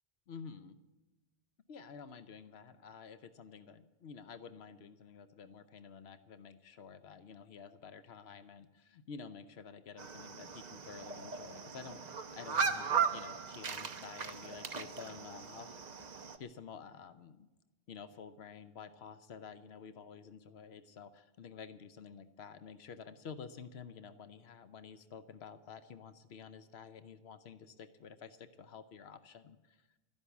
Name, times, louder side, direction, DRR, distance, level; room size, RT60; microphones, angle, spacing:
voice 1, 0.3-0.8 1.7-15.8 16.2-17.5 17.9-29.8, left 6 dB, 90° left, 12 dB, 1.0 m, -50 dB
sound 1, 10.0-16.4, right 6 dB, 45° right, 0.9 m, -37 dB
13.0 x 11.0 x 8.2 m, 1.1 s
omnidirectional pair, 1.0 m